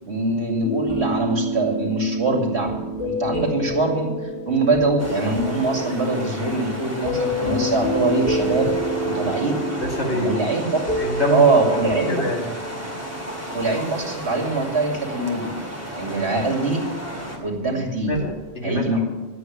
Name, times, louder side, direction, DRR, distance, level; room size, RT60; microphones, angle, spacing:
voice 1, 0.0-4.1 4.5-8.7 9.0-9.6 10.1-10.7 11.3-12.1 13.5-15.5 16.0-16.8 17.3-18.2 18.6-19.0, right 2 dB, 75° right, 1 dB, 2.7 m, -23 dB
sound 1, 0.6-13.8 18.1-18.3, equal, 60° left, 3.4 m, -28 dB
sound 2, 5.0-17.4, equal, 15° right, 2.4 m, -33 dB
voice 2, 9.8-10.4 11.0-11.6 12.1-12.4 18.1-18.9, left 1 dB, 80° left, -1 dB, 3.0 m, -25 dB
11.5 x 8.2 x 9.2 m, 1.1 s
omnidirectional pair, 1.1 m